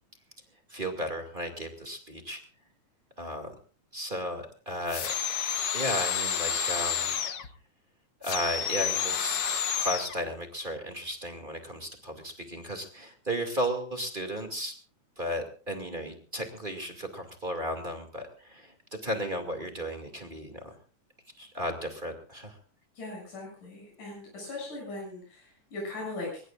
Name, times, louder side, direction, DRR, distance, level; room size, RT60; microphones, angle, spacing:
voice 1, 0.7-2.4 3.2-3.5 3.9-5.1 5.7-7.2 8.2-9.4 9.8-14.8 15.2-18.7 19.0-20.7 21.4-22.6, equal, 20° right, 4 dB, 2.2 m, -34 dB
sound 1, 4.9-7.5 8.2-10.2, left 7 dB, 55° left, 1.4 m, -30 dB
voice 2, 23.0-26.4, left 2 dB, 85° left, -3 dB, 8.8 m, -39 dB
23.5 x 21.5 x 2.5 m, 0.40 s
omnidirectional pair, 3.5 m